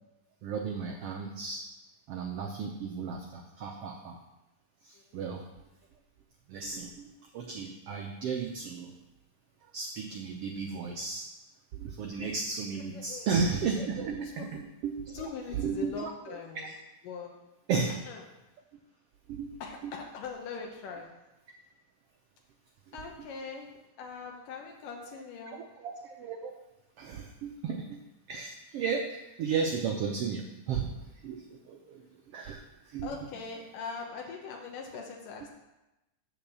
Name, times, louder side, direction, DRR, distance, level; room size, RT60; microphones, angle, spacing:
voice 1, 0.4-1.6 2.1-4.2 4.8-5.4 6.5-8.9 9.7-11.2 11.7-15.1 15.5-16.4 16.6-16.8 17.7-18.0 19.3-19.5 19.8-19.9 25.1-25.2 25.5-26.5 27.0-28.0 28.3-30.9 31.2-32.0 32.3-32.6 32.9-33.1, right 5 dB, 85° right, 3 dB, 1.3 m, -34 dB
voice 2, 12.9-13.3 14.2-14.5 15.1-16.7 17.0-17.3 18.1-18.2 19.6-21.1 22.9-23.7 24.0-25.6 33.0-35.5, left 5 dB, 85° left, 1 dB, 2.7 m, -41 dB
8.2 x 7.2 x 7.0 m, 0.99 s
omnidirectional pair, 3.8 m